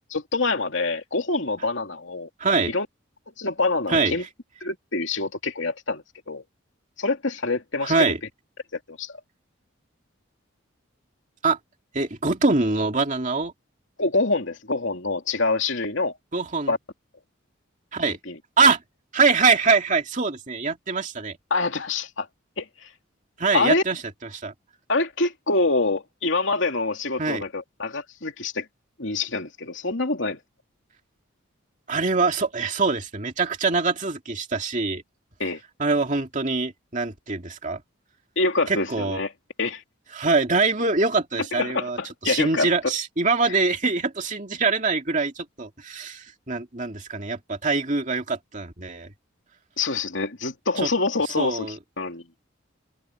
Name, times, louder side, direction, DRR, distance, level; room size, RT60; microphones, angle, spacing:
voice 1, 0.1-2.3 2.7-2.9 3.4-4.2 4.6-6.4 7.0-7.9 8.9-9.1 14.0-16.1 16.7-16.8 18.1-18.4 21.5-22.3 22.6-22.7 23.5-23.8 24.9-28.7 29.0-30.4 35.4-35.6 38.4-39.3 39.6-39.8 41.5-42.9 49.8-52.2, left 3 dB, 65° left, 2.8 m, -26 dB
voice 2, 2.4-2.7 3.9-4.2 7.8-8.2 11.4-11.6 11.9-13.5 16.3-16.7 17.9-18.2 18.6-18.8 19.1-21.4 23.4-24.0 24.3-24.5 27.2-27.4 31.9-35.0 35.8-37.8 38.7-39.2 40.1-42.0 42.2-49.1 50.8-50.9 51.4-51.8, right 4 dB, 35° right, 2.5 m, -23 dB
head